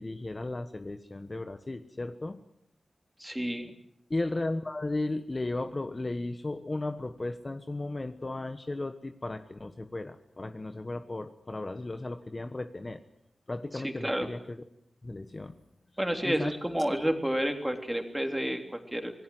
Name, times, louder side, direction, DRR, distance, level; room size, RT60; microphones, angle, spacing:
voice 1, 0.0-2.4 4.1-13.0 13.5-14.6 15.0-15.6 16.2-16.5, left 2 dB, 30° left, 8 dB, 1.3 m, -35 dB
voice 2, 3.2-3.7 13.7-14.3 16.0-19.1, equal, 10° right, 4 dB, 3.4 m, -30 dB
26.5 x 19.5 x 7.8 m, 0.78 s
wide cardioid pair, 95°, 0 cm